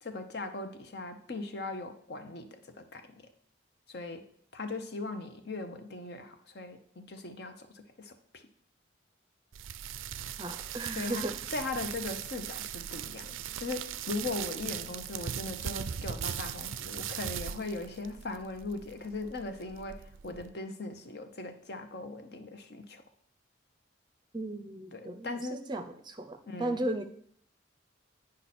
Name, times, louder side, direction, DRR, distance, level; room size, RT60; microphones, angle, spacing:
voice 1, 0.0-3.3 3.9-4.3 4.5-8.4 10.9-11.2 11.5-23.0 24.9-25.6 26.5-26.8, left 2 dB, 55° left, 7 dB, 0.9 m, -39 dB
sound 1, 9.5-20.5, right 9 dB, 85° right, 0.4 m, -39 dB
voice 2, 10.4-11.4 24.3-27.0, right 1 dB, 20° right, 8 dB, 0.5 m, -36 dB
9.8 x 5.3 x 4.3 m, 0.64 s
head